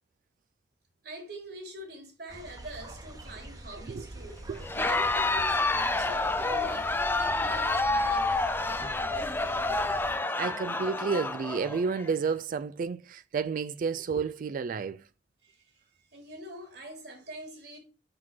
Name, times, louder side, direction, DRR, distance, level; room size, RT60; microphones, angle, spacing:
voice 1, 1.0-4.4 4.7-10.0 15.4-15.7 16.1-17.8, right 1 dB, 65° right, 2.9 m, -44 dB
sound 1, 2.3-10.1, right 1 dB, 20° right, 1.1 m, -45 dB
Crowd, 4.6-12.1, left 2 dB, 10° left, 0.5 m, -28 dB
voice 2, 10.4-15.1, right 5 dB, 50° right, 0.3 m, -31 dB
6.1 x 6.0 x 4.5 m
head